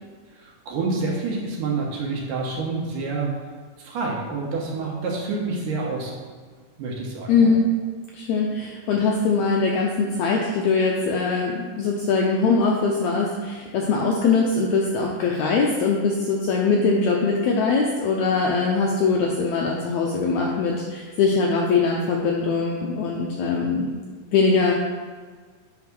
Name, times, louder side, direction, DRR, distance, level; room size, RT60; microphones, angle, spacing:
voice 1, 0.3-3.3 3.8-6.1 6.8-7.5, right 3 dB, 75° right, -2 dB, 2.6 m, -28 dB
voice 2, 7.3-7.6 8.1-23.9 24.3-24.7, left 4 dB, 80° left, -1 dB, 1.7 m, -22 dB
8.7 x 3.6 x 6.0 m, 1.5 s
omnidirectional pair, 3.9 m